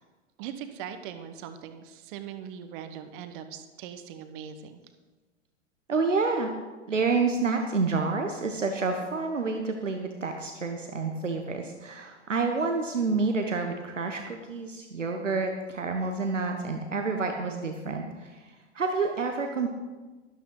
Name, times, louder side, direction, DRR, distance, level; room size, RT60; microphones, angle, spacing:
voice 1, 0.4-4.8, right 8 dB, 45° right, 9 dB, 1.3 m, -40 dB
voice 2, 5.9-6.5 6.9-19.7, right 4 dB, 85° right, 4 dB, 1.1 m, -29 dB
12.5 x 11.5 x 3.9 m, 1.3 s
figure-of-eight pair, 100°, 36 cm